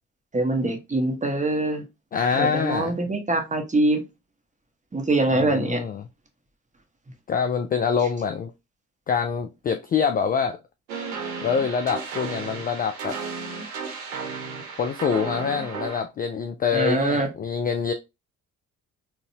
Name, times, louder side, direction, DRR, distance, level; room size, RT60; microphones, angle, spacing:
voice 1, 0.3-1.8 2.3-4.0 4.9-5.8 16.7-17.3, right 2 dB, 15° right, 1.0 m, -23 dB
voice 2, 2.1-2.9 5.3-6.0 7.3-8.5 9.1-10.6 11.4-13.2 14.8-17.9, left 6 dB, 20° left, 0.3 m, -25 dB
sound 1, 10.9-16.0, right 5 dB, 75° right, 0.9 m, -34 dB
3.9 x 2.2 x 2.7 m
figure-of-eight pair, 45°, 44 cm